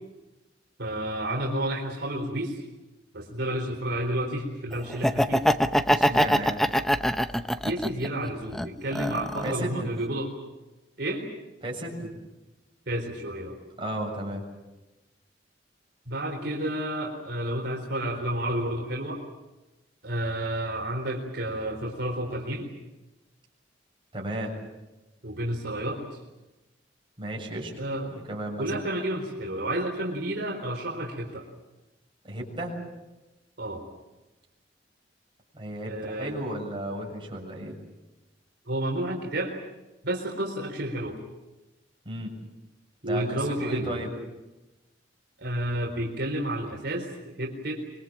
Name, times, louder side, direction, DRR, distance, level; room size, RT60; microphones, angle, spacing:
voice 1, 0.8-2.6 3.1-5.4 7.6-10.3 11.0-11.3 12.9-13.6 16.1-19.2 20.0-22.7 25.2-26.2 27.8-28.2 28.6-31.4 33.6-33.8 35.9-36.3 38.7-39.6 40.0-41.2 43.0-44.0 45.4-47.8, right 1 dB, 65° right, 0 dB, 4.2 m, -30 dB
Laughter, 4.9-8.1 8.5-9.6, equal, ahead, 0.8 m, -23 dB
voice 2, 5.9-6.7 9.4-9.9 11.6-12.1 13.8-14.4 24.1-24.5 27.2-27.7 28.1-28.7 32.2-32.8 35.5-37.8 42.1-42.3 43.0-44.1, right 1 dB, 30° right, -1 dB, 7.1 m, -34 dB
26.0 x 23.0 x 7.5 m, 1.1 s
head